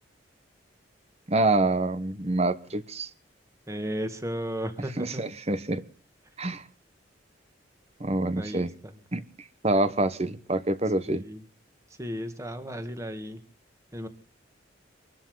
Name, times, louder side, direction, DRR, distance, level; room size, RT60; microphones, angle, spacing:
voice 1, 1.3-3.1 5.0-5.8 6.4-6.6 8.0-8.7 9.1-9.2 9.6-11.2, right 2 dB, 30° right, 13 dB, 1.1 m, -26 dB
voice 2, 3.7-5.2 8.3-8.9 11.1-11.4 12.0-13.4 13.9-14.1, equal, 15° right, 8 dB, 1.9 m, -34 dB
25.0 x 13.0 x 3.9 m, 0.41 s
head